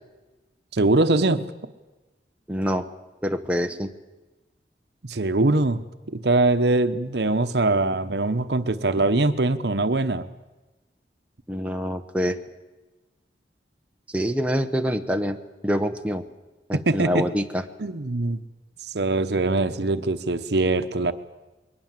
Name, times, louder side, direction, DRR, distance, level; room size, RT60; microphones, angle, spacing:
voice 1, 0.7-1.5 5.0-5.8 6.1-10.3 16.7-17.3 17.8-18.4 18.9-21.1, right 2 dB, 70° right, 10 dB, 1.0 m, -22 dB
voice 2, 2.5-2.9 3.2-3.9 11.5-12.4 14.1-15.4 15.6-16.2 16.7-17.6, equal, 10° right, 5 dB, 0.9 m, -25 dB
22.0 x 18.5 x 7.5 m, 1.1 s
head